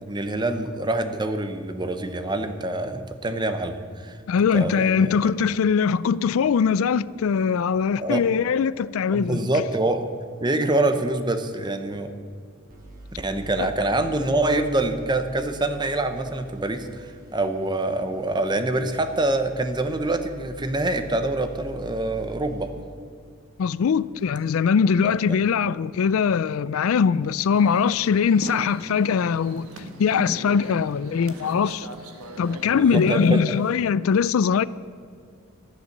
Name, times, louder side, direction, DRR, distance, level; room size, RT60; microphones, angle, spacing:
voice 1, 0.0-4.2 4.5-5.3 8.0-8.2 9.1-10.1 10.4-12.1 13.2-22.7 25.0-25.4 32.7-33.5, right 2 dB, 20° right, 0.8 m, -25 dB
voice 2, 4.3-9.5 13.6-13.7 23.6-29.7 30.0-31.9 32.4-34.6, left 6 dB, 70° left, 0.4 m, -21 dB
sound 1, 12.7-22.7, right 1 dB, 40° right, 2.8 m, -44 dB
sound 2, 27.5-33.7, right 1 dB, 85° right, 1.5 m, -41 dB
13.5 x 11.0 x 6.6 m
head